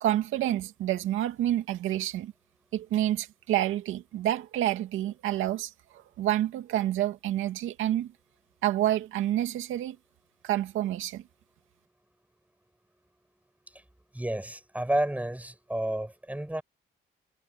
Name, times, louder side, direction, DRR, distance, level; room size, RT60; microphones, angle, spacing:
voice 1, 0.0-2.3 2.7-8.1 8.6-10.0 10.4-11.2, right 13 dB, 85° right, 2.3 m, -28 dB
voice 2, 14.1-16.6, right 1 dB, 5° right, 4.9 m, -30 dB
cardioid pair, 90°, 20 cm